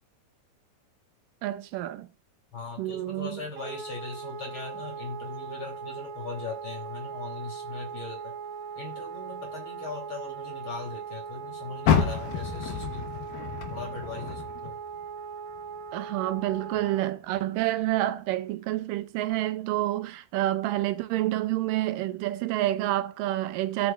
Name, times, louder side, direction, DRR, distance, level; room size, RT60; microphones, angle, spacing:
voice 1, 1.4-2.1 2.8-3.4 15.9-23.9, right 15 dB, 85° right, 2.3 m, -28 dB
voice 2, 2.5-8.4 8.8-14.8, left 3 dB, 35° left, 3.6 m, -39 dB
Wind instrument woodwind instrument, 3.6-17.0, right 6 dB, 65° right, 2.2 m, -39 dB
Car, 11.8-15.1 15.5-16.9 17.3-17.4 18.0-18.1, left 7 dB, 90° left, 3.0 m, -29 dB
17.0 x 6.5 x 2.4 m
omnidirectional pair, 3.9 m